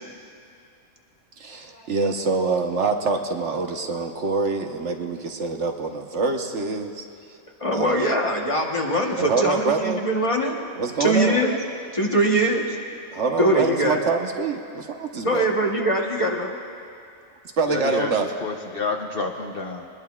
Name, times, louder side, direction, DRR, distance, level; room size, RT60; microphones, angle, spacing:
voice 1, 1.4-7.0 7.7-8.1 9.2-10.0 10.7-11.4 13.1-15.4 17.6-18.3, right 4 dB, 65° right, 3 dB, 1.3 m, -25 dB
voice 2, 7.6-10.6 11.0-11.6 11.9-12.8 13.4-14.0 15.2-16.6, right 1 dB, 25° left, 0 dB, 1.1 m, -22 dB
voice 3, 17.7-19.9, left 4 dB, 50° left, 3 dB, 0.9 m, -29 dB
22.0 x 20.0 x 2.4 m, 2.5 s
omnidirectional pair, 1.4 m